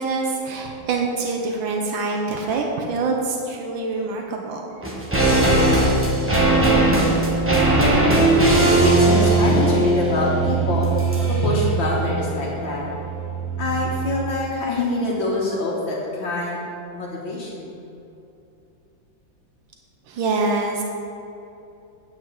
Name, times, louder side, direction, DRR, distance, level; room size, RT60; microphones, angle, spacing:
voice 1, 0.0-4.7 20.1-20.8, right 3 dB, 80° right, 1 dB, 1.6 m, -25 dB
sound 1, 4.8-14.2 14.5-14.6, right 2 dB, 10° right, 1.0 m, -19 dB
voice 2, 7.5-10.9 11.3-12.9 13.6-16.6 16.9-17.8, left 2 dB, 75° left, -4 dB, 2.0 m, -25 dB
9.0 x 5.2 x 7.4 m, 2.8 s
omnidirectional pair, 2.1 m